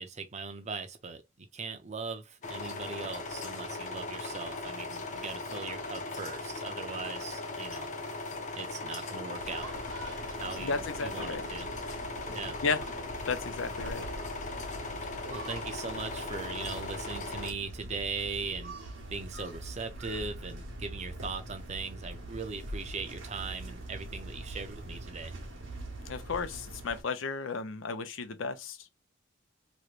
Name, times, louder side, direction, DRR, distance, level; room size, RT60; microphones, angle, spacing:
voice 1, 0.0-7.9 8.5-9.7 10.3-11.7 12.3-12.6 15.3-18.7 19.1-25.4, right 4 dB, 35° right, 0.6 m, -39 dB
sound 1, 2.4-17.5, left 3 dB, 40° left, 0.8 m, -38 dB
sound 2, 9.4-27.0, right 1 dB, 85° right, 1.3 m, -43 dB
voice 2, 10.6-11.4 12.6-12.8 13.3-14.0 26.1-28.9, left 4 dB, 80° left, 0.6 m, -33 dB
3.1 x 3.0 x 2.4 m
head